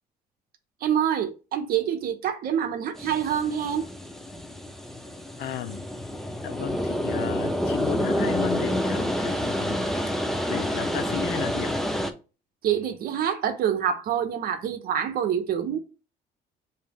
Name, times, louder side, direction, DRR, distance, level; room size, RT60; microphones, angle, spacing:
voice 1, 0.8-3.9 12.6-15.8, right 9 dB, 60° right, 0.8 m, -26 dB
sound 1, 2.9-12.1, equal, ahead, 0.5 m, -28 dB
voice 2, 5.4-5.9 6.4-11.7, left 9 dB, 70° left, 0.6 m, -34 dB
4.8 x 2.8 x 3.5 m
cardioid pair, 110°, 17 cm